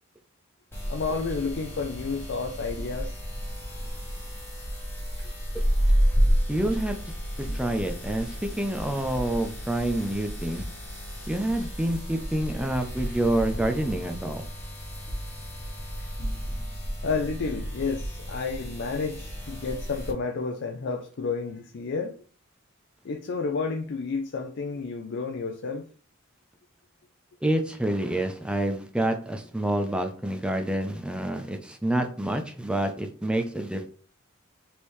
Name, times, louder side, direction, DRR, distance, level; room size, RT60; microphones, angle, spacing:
sound 1, 0.7-20.1, equal, 10° left, 1.3 m, -31 dB
voice 1, 0.9-3.2 17.0-22.2 23.0-25.9, left 4 dB, 55° left, 0.4 m, -31 dB
voice 2, 6.5-7.0 7.4-10.6 11.3-14.5 27.4-33.9, right 1 dB, 5° right, 0.4 m, -28 dB
4.3 x 3.4 x 3.1 m
head